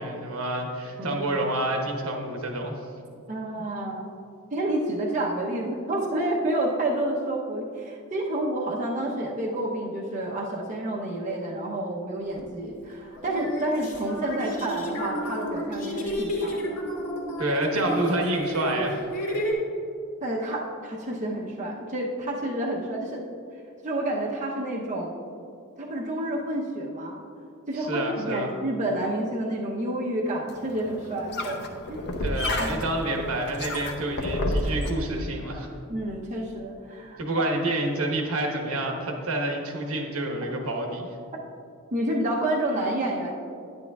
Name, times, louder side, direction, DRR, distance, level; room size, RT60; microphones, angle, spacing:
voice 1, 0.0-2.8 17.4-19.0 27.7-28.5 32.2-35.7 37.2-41.1, right 1 dB, 70° right, 2 dB, 1.2 m, -28 dB
voice 2, 3.3-4.0 4.5-16.8 20.2-23.2 23.8-25.1 25.8-27.2 27.7-32.0 32.6-32.8 35.9-37.5 41.9-43.3, right 1 dB, 35° right, -3 dB, 0.8 m, -29 dB
sound 1, 12.4-12.5 13.2-19.5, equal, 75° left, 2.0 m, -31 dB
sound 2, 30.5-34.9, left 1 dB, 50° left, 0.8 m, -30 dB
10.5 x 9.6 x 2.4 m, 2.4 s
head